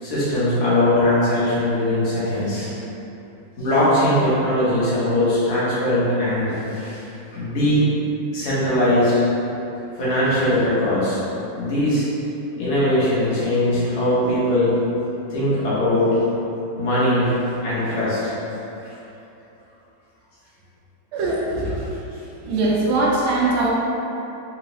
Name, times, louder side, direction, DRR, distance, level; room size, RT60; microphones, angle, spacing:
voice 1, 0.0-2.7 3.6-7.0 7.3-7.8 8.3-9.1 9.9-11.2 11.6-12.0 12.6-14.7 15.3-16.1 16.8-18.3 18.8-18.9 22.2-22.3, left 1 dB, 40° left, -10 dB, 1.3 m, -20 dB
voice 2, 21.1-21.8 22.4-23.7, right 2 dB, 85° right, -4 dB, 1.5 m, -21 dB
4.7 x 2.4 x 3.9 m, 3.0 s
omnidirectional pair, 2.2 m